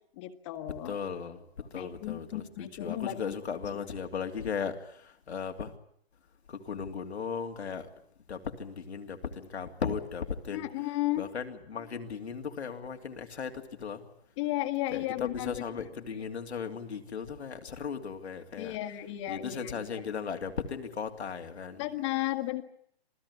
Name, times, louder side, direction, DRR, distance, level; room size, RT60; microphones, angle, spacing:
voice 1, 0.2-0.9 1.7-3.2 3.7-3.8 10.5-11.2 14.4-15.5 18.6-19.9 21.8-22.6, left 16 dB, 30° left, 1.7 m, -34 dB
voice 2, 0.9-5.7 6.5-7.9 8.3-10.7 11.2-14.0 14.9-18.8 19.3-21.8, left 6 dB, 85° left, 2.9 m, -37 dB
27.0 x 16.5 x 9.7 m
hypercardioid pair, 155°, 32 cm